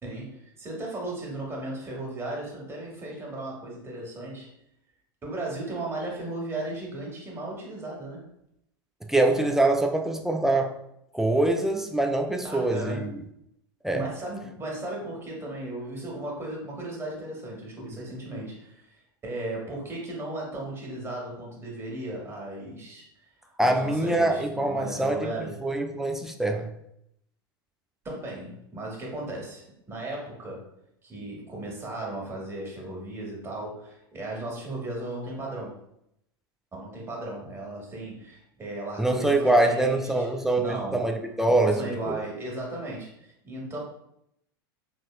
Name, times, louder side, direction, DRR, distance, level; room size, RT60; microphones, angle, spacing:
voice 1, 0.0-4.5 5.2-8.3 12.4-13.1 13.9-25.6 28.0-30.7 31.0-35.8 36.7-40.3 40.6-41.1 41.5-43.8, right 2 dB, 20° right, -2 dB, 1.3 m, -36 dB
voice 2, 9.1-10.8 11.1-13.2 13.8-14.0 23.6-26.7 39.0-41.8 42.1-42.2, right 2 dB, 5° right, 4 dB, 0.3 m, -24 dB
4.0 x 2.2 x 2.3 m, 0.77 s
hypercardioid pair, 90°, 13 cm